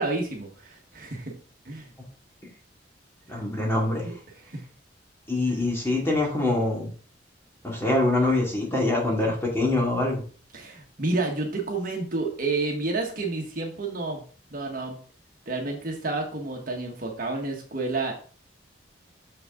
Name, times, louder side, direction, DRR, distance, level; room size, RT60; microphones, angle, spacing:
voice 1, 0.0-1.3 1.6-1.9 3.3-3.4 4.0-4.1 4.4-4.6 5.5-5.6 10.5-14.2 14.5-15.0 15.5-18.1, right 3 dB, 50° right, 1 dB, 1.5 m, -30 dB
voice 2, 3.3-4.1 5.3-6.9 7.6-10.2, left 2 dB, 15° left, -2 dB, 2.4 m, -24 dB
6.6 x 6.6 x 3.8 m, 0.41 s
head